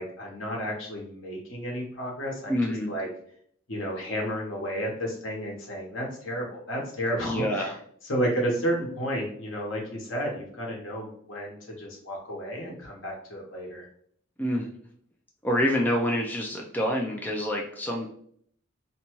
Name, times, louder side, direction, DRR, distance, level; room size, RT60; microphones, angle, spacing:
voice 1, 0.0-2.6 2.9-3.1 3.7-7.7 8.1-13.9, equal, 75° left, -1 dB, 0.9 m, -32 dB
voice 2, 2.5-2.9 7.2-7.7 14.4-14.7 15.4-18.1, left 1 dB, 10° left, -1 dB, 0.3 m, -27 dB
2.6 x 2.2 x 2.9 m, 0.63 s
head